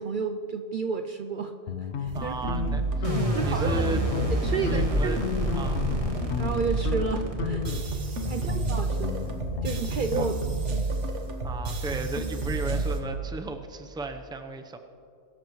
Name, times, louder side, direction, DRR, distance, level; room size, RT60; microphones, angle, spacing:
voice 1, 0.0-1.5 1.8-2.6 3.3-3.8 4.4-5.2 6.2-7.7 8.3-9.2 9.6-10.3, right 5 dB, 55° right, 8 dB, 0.6 m, -31 dB
sound 1, 1.7-3.5 3.8-4.4 4.7-6.6 6.9-7.1 7.4-10.4, left 6 dB, 70° left, 1.1 m, -33 dB
voice 2, 2.1-4.0 4.6-5.2 5.5-5.9 8.2-8.6 10.2-10.3 11.4-14.8, right 3 dB, 5° right, 6 dB, 0.6 m, -35 dB
sound 2, 2.1-13.0, right 3 dB, 90° right, 1.5 m, -31 dB
sound 3, 3.0-8.1, equal, 30° right, 1.7 m, -29 dB
22.0 x 13.0 x 3.1 m, 2.6 s
omnidirectional pair, 1.2 m